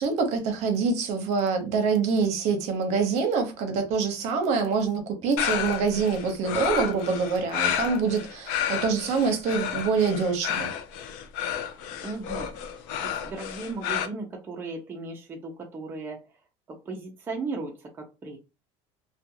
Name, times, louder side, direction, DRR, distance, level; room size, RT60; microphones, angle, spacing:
voice 1, 0.0-10.7, right 5 dB, 55° right, 0.7 m, -25 dB
sound 1, 5.4-14.1, left 9 dB, 75° left, 0.4 m, -31 dB
voice 2, 12.0-12.6 13.0-16.3 16.7-18.4, right 3 dB, 15° right, 0.5 m, -36 dB
2.4 x 2.2 x 2.8 m
cardioid pair, 150°, 14 cm